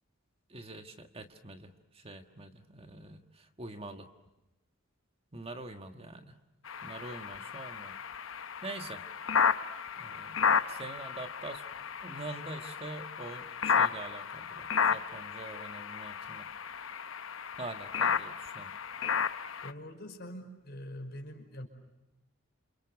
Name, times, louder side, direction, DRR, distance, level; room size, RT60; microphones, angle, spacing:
voice 1, 0.5-4.1 5.3-6.4 6.8-8.0 8.6-9.0 10.0-11.6 12.0-16.5 17.6-18.7, right 2 dB, 30° right, 6 dB, 1.6 m, -45 dB
sound 1, 6.7-19.7, left 6 dB, 70° left, 0.9 m, -33 dB
voice 2, 19.6-21.7, left 1 dB, 55° left, 4 dB, 5.4 m, -44 dB
29.0 x 28.0 x 7.1 m, 0.95 s
head